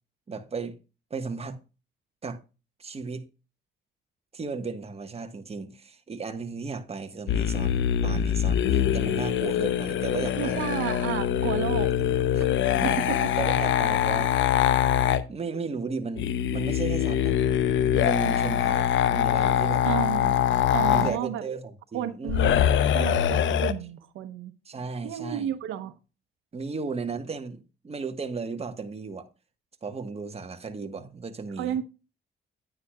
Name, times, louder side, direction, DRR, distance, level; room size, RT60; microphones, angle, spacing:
voice 1, 0.3-0.8 1.1-1.6 2.2-2.4 2.8-3.2 4.3-10.6 12.3-12.4 12.8-13.0 13.4-14.3 15.3-17.4 17.9-19.8 20.9-22.5 24.7-25.5 26.5-29.3 29.8-31.7, right 4 dB, 30° right, 1.4 m, -35 dB
sound 1, 7.3-15.2 16.2-21.2 22.3-23.7, left 10 dB, 75° left, 0.8 m, -24 dB
voice 2, 10.3-11.9 12.4-12.5 12.8-13.3 19.8-20.4 20.7-21.4 21.9-24.5 25.0-25.9 31.6-31.8, right 10 dB, 85° right, 0.9 m, -32 dB
9.8 x 9.5 x 2.4 m
cardioid pair, 90°, 20 cm